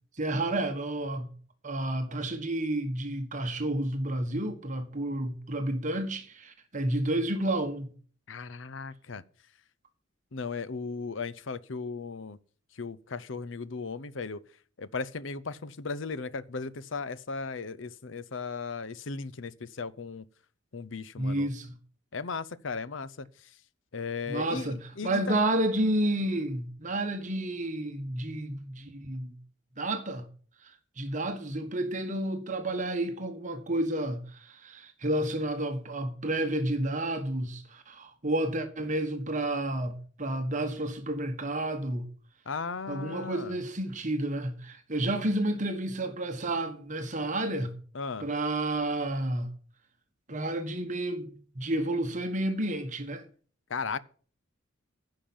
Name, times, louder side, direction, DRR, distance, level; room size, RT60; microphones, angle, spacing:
voice 1, 0.1-1.3 1.6-7.9 21.2-21.7 24.3-29.3 29.8-30.2 30.6-42.1 42.9-47.7 48.2-49.5 50.3-53.2, right 1 dB, 40° right, 1.4 m, -31 dB
voice 2, 8.3-9.2 10.3-12.4 12.8-14.4 14.8-20.2 20.7-21.5 22.1-23.3 23.9-25.4 42.5-43.5 47.9-48.3 53.7-54.0, left 4 dB, 65° left, 0.7 m, -36 dB
10.5 x 5.8 x 8.7 m
head